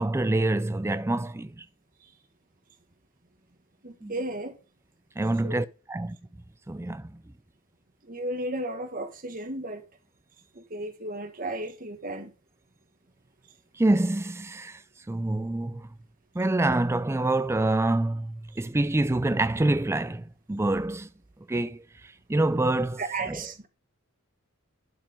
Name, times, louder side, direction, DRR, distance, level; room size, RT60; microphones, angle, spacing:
voice 1, 0.0-1.7 4.0-4.1 5.2-6.2 6.7-7.2 13.7-14.8 15.1-15.9 16.3-21.1 21.5-23.5, right 2 dB, 10° right, 0.4 m, -26 dB
voice 2, 3.8-4.6 5.4-5.6 8.1-9.8 10.5-12.3 23.0-23.7, right 2 dB, 40° right, 1.5 m, -34 dB
12.0 x 5.0 x 5.2 m
head